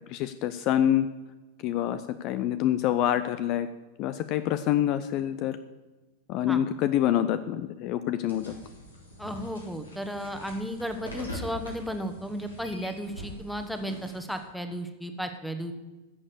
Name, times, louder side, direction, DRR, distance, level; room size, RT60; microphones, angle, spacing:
voice 1, 0.1-1.1 1.6-3.7 4.0-5.6 6.3-8.5, left 11 dB, 40° left, 12 dB, 0.5 m, -26 dB
sound 1, 8.3-14.4, equal, 75° left, 3.4 m, -43 dB
voice 2, 9.2-15.7, equal, ahead, 7 dB, 1.3 m, -34 dB
13.5 x 7.2 x 6.8 m, 1.2 s
figure-of-eight pair, 90°, 0 cm